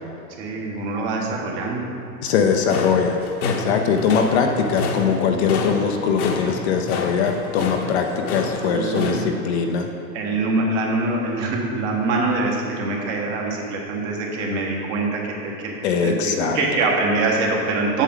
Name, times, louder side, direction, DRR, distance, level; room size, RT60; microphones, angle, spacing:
voice 1, 0.4-1.9 6.4-6.5 8.6-9.3 10.1-15.5 16.0-18.0, right 3 dB, 45° right, -1 dB, 1.6 m, -24 dB
voice 2, 2.2-9.9 15.8-16.6, left 6 dB, 40° left, 4 dB, 0.6 m, -21 dB
sound 1, 2.5-9.2, left 3 dB, 60° left, 1.1 m, -30 dB
8.2 x 7.2 x 3.7 m, 2.9 s
hypercardioid pair, 130°, 50 cm